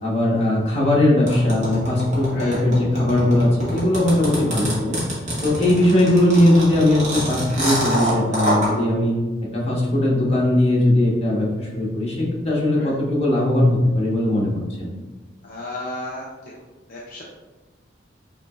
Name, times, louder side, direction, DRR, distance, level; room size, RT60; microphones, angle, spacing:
voice 1, 0.0-5.0 5.4-9.1 9.5-14.5 14.8-14.9, left 1 dB, 35° left, -5 dB, 1.1 m, -19 dB
sound 1, 1.3-8.7, equal, 40° right, 1.3 m, -25 dB
voice 2, 2.3-2.6 5.5-5.7 12.7-12.9 15.4-16.5 16.9-17.2, left 2 dB, 50° left, -5 dB, 0.6 m, -34 dB
5.8 x 3.0 x 2.3 m, 1.2 s
head